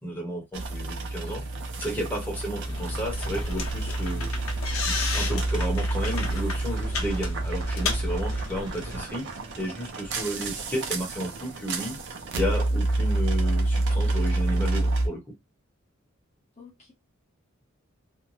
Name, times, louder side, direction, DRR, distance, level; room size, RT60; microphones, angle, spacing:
voice 1, 0.0-1.4 1.8-4.3 4.9-9.3 9.6-12.0 12.4-15.2, equal, 10° left, 1.0 m, -32 dB
sound 1, 0.5-15.1, right 2 dB, 60° right, 0.6 m, -28 dB
sound 2, 2.6-9.0, left 3 dB, 85° left, 0.7 m, -33 dB
voice 2, 16.6-16.9, left 4 dB, 35° left, 1.0 m, -51 dB
2.6 x 2.1 x 3.0 m
head